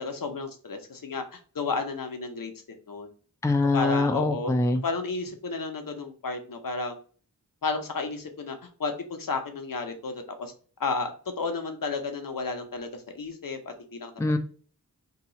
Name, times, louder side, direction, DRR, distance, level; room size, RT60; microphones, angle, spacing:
voice 1, 0.0-3.1 3.7-4.5 4.8-7.0 7.6-10.5 10.8-14.1, left 4 dB, 75° left, 5 dB, 0.7 m, -32 dB
voice 2, 3.4-4.8 14.2-14.4, left 2 dB, 10° left, 6 dB, 0.4 m, -23 dB
2.8 x 2.3 x 3.9 m, 0.41 s
wide cardioid pair, 55°, 34 cm